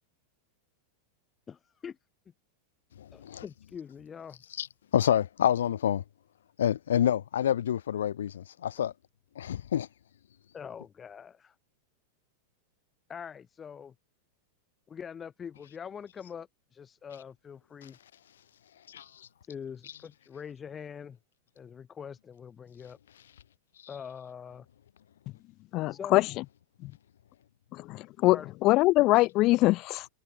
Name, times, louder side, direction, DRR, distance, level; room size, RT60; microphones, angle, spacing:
voice 1, 1.5-2.0 3.1-4.4 10.5-11.6 13.1-13.9 14.9-18.0 19.4-21.2 21.6-23.0 23.9-24.7 25.9-26.2 28.3-28.5, left 7 dB, 20° left, 7.0 m, -43 dB
voice 2, 3.0-3.4 4.6-4.7 4.9-6.0 6.6-8.9 9.4-9.9 18.9-19.3, left 10 dB, 65° left, 1.7 m, -28 dB
voice 3, 25.7-26.2 26.8-26.9 27.7-30.1, left 19 dB, 40° left, 0.5 m, -23 dB
figure-of-eight pair, 90°, 0 cm